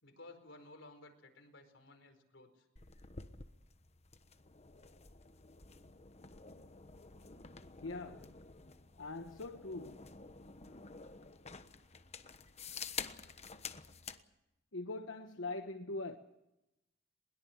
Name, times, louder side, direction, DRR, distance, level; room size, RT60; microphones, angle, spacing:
voice 1, 0.0-2.6, left 2 dB, 70° left, 6 dB, 4.7 m, -56 dB
sound 1, 2.8-14.2, left 5 dB, 35° left, 1.2 m, -50 dB
voice 2, 7.8-8.3 9.0-10.1 14.7-16.2, left 2 dB, 90° left, 6 dB, 1.2 m, -42 dB
21.5 x 21.5 x 7.3 m, 0.92 s
head